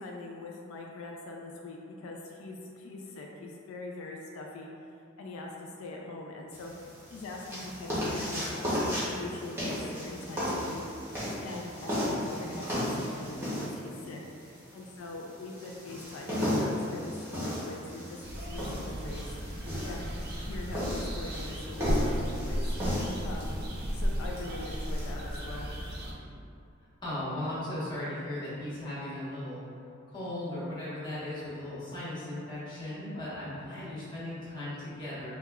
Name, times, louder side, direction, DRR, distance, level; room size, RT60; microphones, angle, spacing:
voice 1, 0.0-4.7 5.2-6.7 7.1-14.2 14.7-18.2 18.5-20.1 20.4-22.8 23.2-23.5 23.9-25.7, left 2 dB, 85° left, 0 dB, 0.3 m, -42 dB
sound 1, 6.5-25.1, equal, 10° right, 0.7 m, -35 dB
sound 2, 18.2-26.1, equal, 50° right, 0.5 m, -35 dB
voice 2, 27.0-29.6 30.1-35.3, left 1 dB, 20° left, -11 dB, 1.0 m, -37 dB
4.6 x 2.2 x 2.3 m, 2.6 s
head